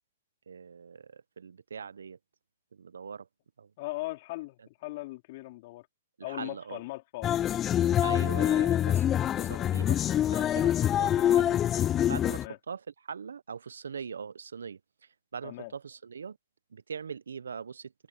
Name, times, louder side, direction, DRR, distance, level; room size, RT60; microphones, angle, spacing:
voice 1, 0.5-2.2 2.7-3.3 3.6-3.7 6.3-6.8 8.0-9.1 9.4-10.0 10.3-11.6 12.1-16.4 16.7-17.9, right 6 dB, 80° right, 0.9 m, -41 dB
voice 2, 3.8-5.9 6.2-7.4 9.4-9.7 12.3-12.6 15.4-15.7, left 20 dB, 45° left, 4.1 m, -39 dB
sound 1, 7.2-12.5, left 11 dB, 25° left, 0.3 m, -25 dB
open air
hypercardioid pair, 125°, 0 cm